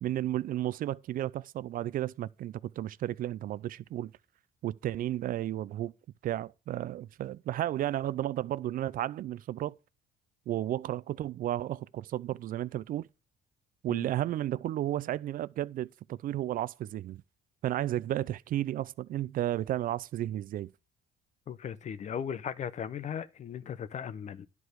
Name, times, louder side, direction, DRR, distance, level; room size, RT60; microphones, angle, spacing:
voice 1, 0.0-4.1 4.6-5.9 6.2-9.7 10.5-13.1 13.8-17.2 17.6-20.7, right 13 dB, 55° right, 0.4 m, -33 dB
voice 2, 21.5-24.5, left 8 dB, 45° left, 0.8 m, -37 dB
11.0 x 4.7 x 6.5 m
cardioid pair, 110°, 17 cm